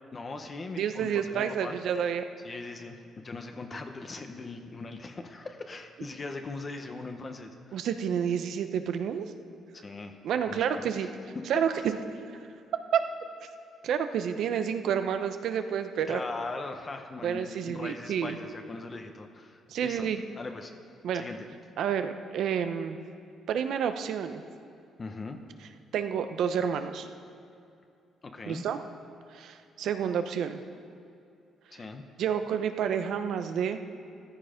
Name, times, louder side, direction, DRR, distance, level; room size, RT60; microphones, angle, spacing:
voice 1, 0.1-1.8 2.4-7.8 9.7-10.2 10.5-11.1 11.7-11.9 16.1-20.8 21.1-21.4 25.0-25.4 28.2-28.6 31.7-32.0, left 3 dB, 30° left, 6 dB, 1.0 m, -40 dB
voice 2, 0.8-2.2 7.7-9.3 10.2-11.1 11.5-12.0 12.3-12.4 12.9-13.0 13.8-16.2 17.2-18.4 19.7-20.2 21.0-21.2 21.8-23.0 23.5-24.4 25.9-27.1 28.5-28.8 29.3-30.6 32.2-33.8, right 8 dB, 75° right, 8 dB, 0.8 m, -29 dB
14.0 x 12.0 x 5.2 m, 2.6 s
cardioid pair, 110°, 0 cm